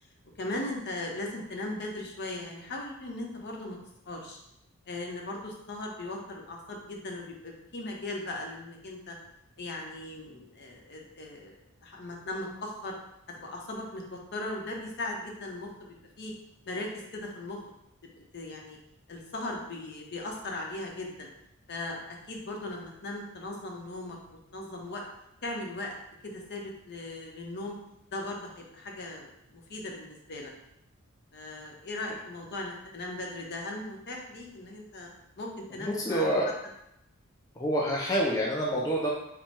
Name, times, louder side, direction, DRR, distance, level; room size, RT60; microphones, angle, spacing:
voice 1, 0.4-3.8 4.1-4.4 4.9-9.2 9.6-11.5 11.8-12.9 13.4-16.3 16.7-17.6 18.3-18.8 19.1-21.3 21.7-24.2 24.5-25.0 25.4-25.9 26.2-27.8 28.1-30.5 31.3-35.1 35.4-36.3, left 2 dB, 50° left, 0 dB, 0.8 m, -38 dB
voice 2, 35.8-36.5 37.6-39.1, equal, 15° left, -3 dB, 0.4 m, -27 dB
4.2 x 2.2 x 4.5 m, 0.82 s
head